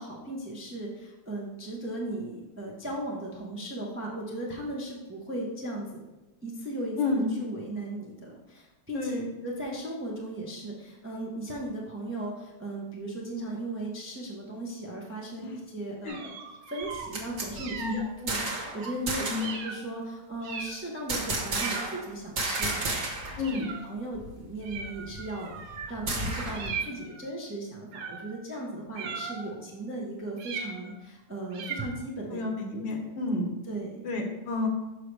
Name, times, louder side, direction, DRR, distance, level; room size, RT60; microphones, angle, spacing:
voice 1, 0.0-6.0 6.4-16.3 16.7-23.3 23.8-32.4 33.1-33.2 33.7-34.0, right 1 dB, 10° right, -3 dB, 0.5 m, -37 dB
voice 2, 7.0-7.3 8.9-9.3 15.4-15.5 16.1-16.2 17.8-18.1 19.3-19.5 23.4-23.7 32.3-33.5 34.0-34.7, left 3 dB, 80° left, 2 dB, 1.7 m, -30 dB
sound 1, 16.1-17.1 17.6-18.1 18.8-19.0 19.4-19.8 20.4-20.9 21.5-22.0 22.5-22.9 23.4-24.0 24.6-25.9 26.5-27.2 27.9-28.4 29.0-29.6 30.4-31.0 31.5-32.0, right 5 dB, 80° right, 1.4 m, -38 dB
sound 2, 16.8-18.8 19.1-19.6 21.1-22.1 22.4-23.4 23.7-23.8 24.1-26.7, right 2 dB, 50° right, 1.5 m, -32 dB
6.6 x 5.6 x 3.3 m, 1.0 s
omnidirectional pair, 2.0 m